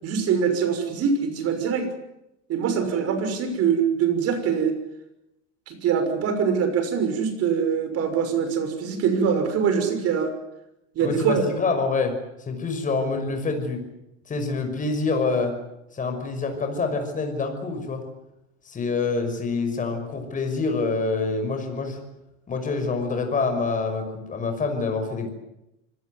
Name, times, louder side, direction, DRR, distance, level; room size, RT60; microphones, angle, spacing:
voice 1, 0.0-1.9 2.5-4.8 5.7-10.3 10.9-11.5, right 6 dB, 40° right, 8 dB, 6.2 m, -23 dB
voice 2, 11.0-12.2 12.5-13.8 14.3-15.5 15.9-18.0 18.7-22.0 22.5-25.3, left 4 dB, 20° left, 5 dB, 5.9 m, -26 dB
25.5 x 18.0 x 9.6 m, 0.89 s
supercardioid pair, 120°, 36 cm